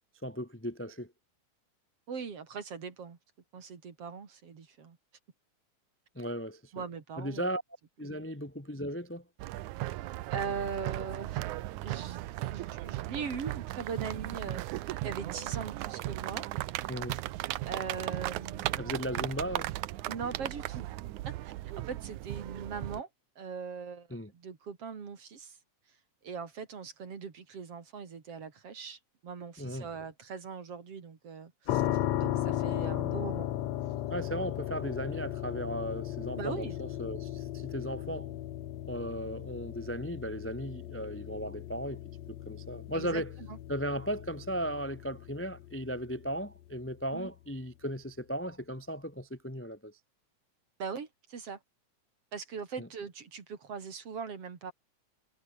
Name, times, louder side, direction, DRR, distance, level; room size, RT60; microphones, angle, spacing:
voice 1, 0.2-1.1 6.1-6.8 7.2-7.6 8.0-9.2 16.9-17.2 18.8-19.7 24.1-24.3 29.6-29.9 34.1-38.3 38.9-42.0 42.3-43.3 43.7-49.9 52.8-52.9, equal, 10° left, 0.9 m, -36 dB
voice 2, 2.1-3.2 3.5-5.0 6.7-7.5 8.0-8.4 10.3-11.4 11.8-16.5 17.7-18.8 20.1-20.9 21.3-23.1 23.4-24.1 24.3-25.6 26.2-31.8 32.2-33.5 36.4-36.8 42.9-43.2 43.5-43.6 47.1-47.3 50.8-51.6 52.3-54.7, right 6 dB, 50° right, 3.6 m, -40 dB
sound 1, 9.4-23.0, right 16 dB, 80° right, 2.2 m, -36 dB
sound 2, 31.7-46.5, left 13 dB, 65° left, 2.1 m, -36 dB
omnidirectional pair, 3.5 m